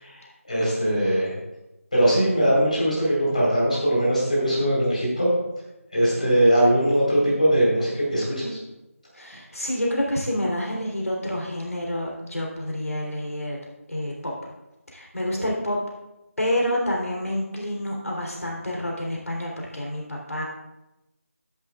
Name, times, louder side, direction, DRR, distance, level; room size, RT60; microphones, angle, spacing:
voice 1, 0.0-1.3 1.9-5.3 5.9-8.6, right 1 dB, 30° left, -6 dB, 4.3 m, -21 dB
voice 2, 9.1-13.6 13.9-14.3 14.9-15.8 16.4-20.4, left 1 dB, 80° left, -2 dB, 3.4 m, -28 dB
13.5 x 11.0 x 2.5 m, 0.96 s
figure-of-eight pair, 180°, 8 cm